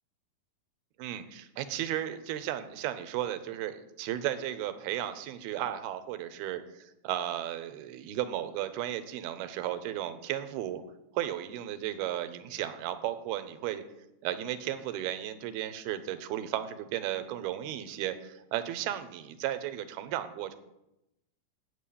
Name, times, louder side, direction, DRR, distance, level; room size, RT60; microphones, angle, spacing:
voice 1, 1.0-10.8 11.1-13.8 14.2-20.6, right 12 dB, 85° right, 11 dB, 2.8 m, -34 dB
9.5 x 8.2 x 8.5 m, 0.88 s
omnidirectional pair, 4.4 m